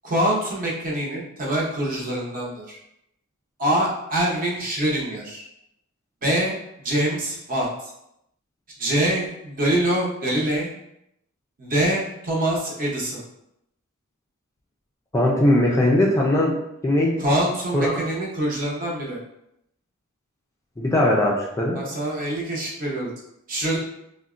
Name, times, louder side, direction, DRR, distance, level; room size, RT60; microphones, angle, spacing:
voice 1, 0.0-2.8 3.6-5.4 6.2-6.5 6.8-7.7 8.8-10.7 11.6-13.2 17.2-19.2 21.8-23.1 23.5-23.8, right 1 dB, 40° right, -3 dB, 0.7 m, -24 dB
voice 2, 15.1-16.6 16.8-17.2 17.7-18.0 20.8-21.8, left 1 dB, 15° left, -3 dB, 0.4 m, -20 dB
3.8 x 2.1 x 2.4 m, 0.80 s
head